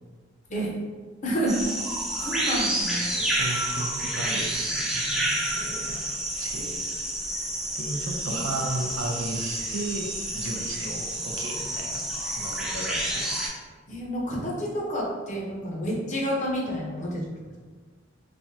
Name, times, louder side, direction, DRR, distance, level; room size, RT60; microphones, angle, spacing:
voice 1, 1.2-1.6 2.2-3.1 8.3-8.4 13.9-17.2, equal, 40° left, -3 dB, 0.7 m, -29 dB
sound 1, 1.5-13.5, right 1 dB, 5° right, 0.4 m, -29 dB
voice 2, 2.1-6.0 6.4-6.8 7.7-13.3, right 2 dB, 70° right, 1 dB, 0.5 m, -35 dB
3.3 x 2.1 x 2.7 m, 1.4 s
head